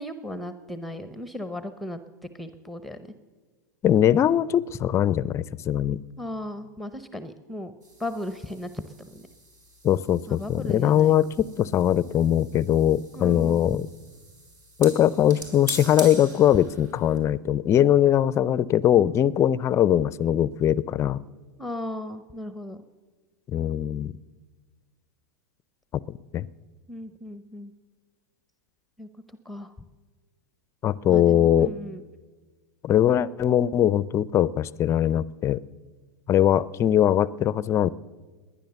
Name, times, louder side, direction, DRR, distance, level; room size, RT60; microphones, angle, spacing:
voice 1, 0.0-2.0 2.3-3.1 6.2-7.7 8.0-8.7 9.0-9.3 10.3-11.2 13.1-13.8 21.6-22.8 26.9-27.7 29.0-29.1 29.4-29.7 31.1-32.0, left 1 dB, ahead, 11 dB, 0.8 m, -36 dB
voice 2, 3.8-6.0 9.8-13.9 14.8-21.2 23.5-24.1 26.1-26.5 30.8-31.7 32.8-35.6 36.3-37.9, left 11 dB, 30° left, 20 dB, 0.5 m, -21 dB
sound 1, 7.8-17.2, right 2 dB, 70° right, 4.4 m, -43 dB
20.5 x 10.0 x 6.9 m, 1.4 s
hypercardioid pair, 110°, 10 cm